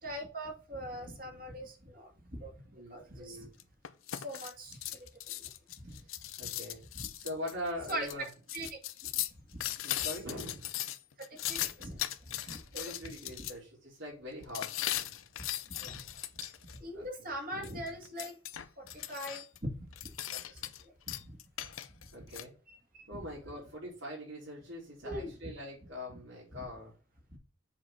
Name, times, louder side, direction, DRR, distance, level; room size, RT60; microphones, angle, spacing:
voice 1, 0.0-3.5 4.1-4.8 5.4-5.5 5.8-6.0 6.4-6.5 6.9-7.1 7.9-8.3 8.5-8.7 9.1-9.2 9.5-9.6 10.0-10.1 11.3-12.0 12.5-13.1 15.8-16.0 16.7-18.3 18.8-20.7 21.1-21.4 22.7-23.2 25.0-25.5 26.1-26.2, equal, 45° right, 1 dB, 2.4 m, -42 dB
voice 2, 0.9-1.4 2.7-3.5 5.8-6.1 6.4-6.8 7.1-8.2 9.8-10.6 12.3-15.4 16.9-17.1 17.5-17.8 22.1-22.5 23.1-26.9, left 1 dB, 80° right, -7 dB, 3.9 m, -43 dB
sound 1, 3.6-13.5 14.5-16.8 17.6-19.6 19.9-20.8 21.1-22.4, left 13 dB, 90° left, 0.7 m, -38 dB
7.4 x 4.3 x 5.6 m, 0.37 s
head